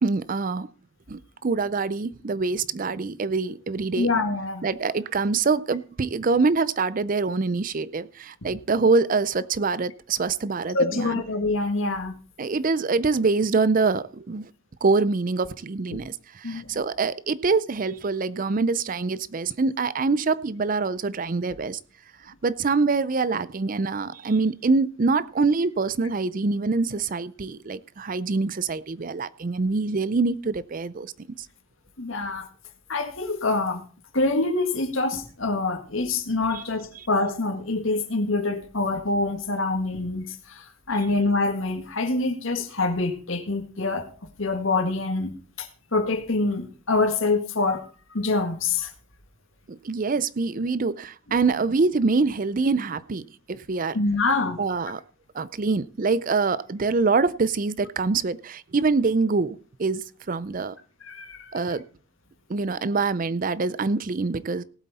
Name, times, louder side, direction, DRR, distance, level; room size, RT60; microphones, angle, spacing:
voice 1, 0.0-0.7 1.1-4.1 4.6-11.2 12.4-14.4 14.8-21.8 22.2-31.1 36.5-36.6 49.7-54.0 54.6-55.0 55.3-60.8 61.5-61.8 62.5-64.6, right 4 dB, 40° right, 0.5 m, -25 dB
voice 2, 4.0-4.7 8.4-8.5 10.7-12.2 15.9-16.0 16.4-16.8 32.0-32.5 32.9-33.8 34.1-44.1 44.4-48.9 53.9-54.6 61.0-61.8, left 3 dB, 70° left, 1.9 m, -26 dB
18.0 x 8.1 x 4.2 m
head